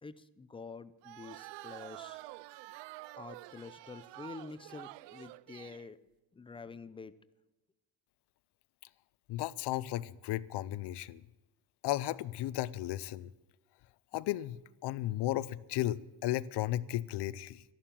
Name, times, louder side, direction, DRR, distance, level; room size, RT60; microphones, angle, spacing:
voice 1, 0.0-2.2 3.2-6.0 6.3-7.1, left 4 dB, 15° left, 14 dB, 0.5 m, -48 dB
sound 1, 1.0-5.9, right 18 dB, 85° right, 0.5 m, -48 dB
voice 2, 9.3-11.2 11.8-13.3 14.1-17.6, left 14 dB, 70° left, 19 dB, 0.7 m, -34 dB
13.0 x 11.5 x 7.5 m, 1.1 s
cardioid pair, 150°, 42 cm